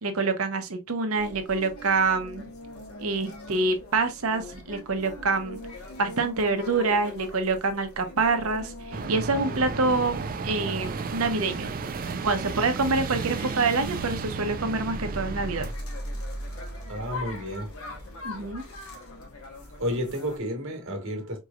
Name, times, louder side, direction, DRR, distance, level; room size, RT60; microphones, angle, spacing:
voice 1, 0.0-2.5 3.0-5.6 6.0-11.7 12.2-15.7 18.2-18.6, right 3 dB, 85° right, 0.8 m, -26 dB
sound 1, 1.1-20.4, left 1 dB, 90° left, 1.3 m, -40 dB
sound 2, 8.9-15.7, right 4 dB, 45° right, 0.4 m, -33 dB
voice 2, 16.2-17.7 19.8-21.4, equal, 65° right, 1.4 m, -32 dB
4.6 x 3.1 x 2.4 m
head